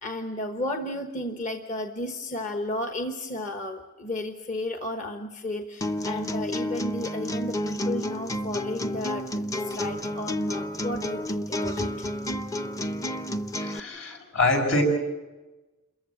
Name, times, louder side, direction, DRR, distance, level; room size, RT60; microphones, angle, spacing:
voice 1, 0.0-12.1, left 1 dB, 40° left, 5 dB, 1.1 m, -33 dB
sound 1, 5.8-13.8, left 1 dB, 15° left, 0.7 m, -30 dB
voice 2, 13.6-14.8, left 2 dB, 75° left, 3 dB, 6.0 m, -25 dB
27.5 x 15.0 x 8.5 m, 1.1 s
head